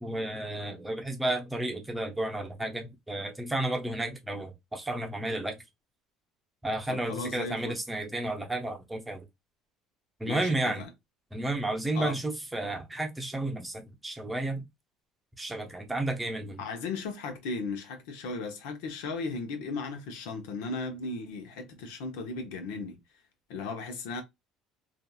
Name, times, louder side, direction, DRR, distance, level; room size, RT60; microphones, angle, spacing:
voice 1, 0.0-5.6 6.6-9.2 10.2-10.8 11.3-14.7 15.4-16.6, right 1 dB, 10° right, 0.7 m, -32 dB
voice 2, 6.9-7.8 10.2-10.9 11.9-12.2 16.6-23.0 23.5-24.2, left 3 dB, 90° left, 0.8 m, -36 dB
2.8 x 2.5 x 2.3 m
cardioid pair, 110°, 0 cm